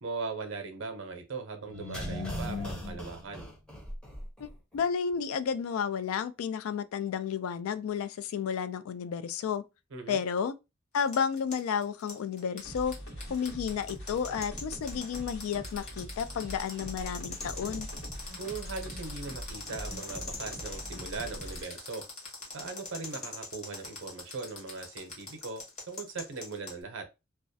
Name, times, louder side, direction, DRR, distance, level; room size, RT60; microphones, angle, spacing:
voice 1, 0.0-3.5 9.9-10.2 18.4-22.0 22.5-27.1, right 4 dB, 65° right, 0.6 m, -39 dB
sound 1, 1.6-4.5 4.8-4.9, left 1 dB, 5° left, 0.6 m, -37 dB
voice 2, 4.4-9.6 10.1-10.5 10.9-12.9 13.3-17.9, left 7 dB, 90° left, 0.3 m, -32 dB
sound 2, 10.9-26.7, left 3 dB, 35° left, 1.0 m, -42 dB
sound 3, 12.6-21.7, equal, 70° left, 1.1 m, -43 dB
2.3 x 2.1 x 2.6 m
head